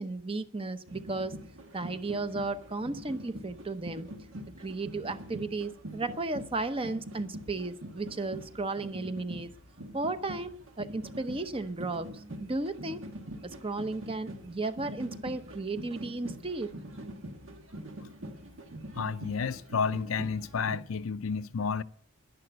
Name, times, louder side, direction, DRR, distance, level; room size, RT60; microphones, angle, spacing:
voice 1, 0.0-1.4 1.7-4.1 4.6-9.5 9.9-13.0 13.4-16.7, right 3 dB, 25° right, 0.8 m, -34 dB
sound 1, 0.9-20.8, equal, 70° right, 1.6 m, -44 dB
voice 2, 18.9-21.8, left 5 dB, 90° left, 0.5 m, -31 dB
11.0 x 11.0 x 7.8 m
head